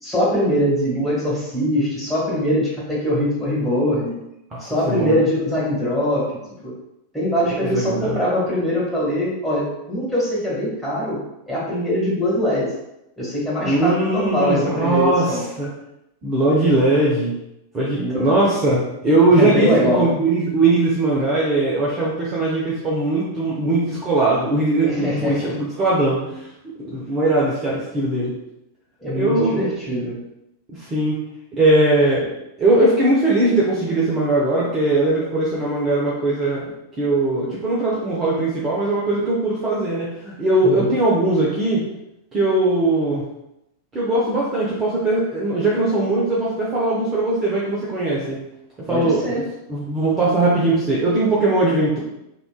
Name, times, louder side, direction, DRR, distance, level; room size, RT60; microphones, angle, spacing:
voice 1, 0.0-4.2 4.6-6.4 6.6-6.7 7.1-11.2 11.5-12.7 13.2-15.4 17.9-18.3 19.3-20.2 24.8-25.6 29.0-30.2 40.6-40.9 48.9-49.5, equal, ahead, -8 dB, 1.5 m, -22 dB
voice 2, 4.5-5.2 7.5-8.2 13.7-15.7 16.2-17.3 17.7-26.4 26.8-28.3 29.1-29.6 30.7-31.2 31.5-32.3 32.6-36.7 37.0-41.8 42.3-43.2 43.9-48.4 48.9-49.4 49.7-52.0, right 2 dB, 25° right, -6 dB, 0.6 m, -20 dB
3.7 x 2.4 x 2.3 m, 0.85 s
figure-of-eight pair, 90°, 0 cm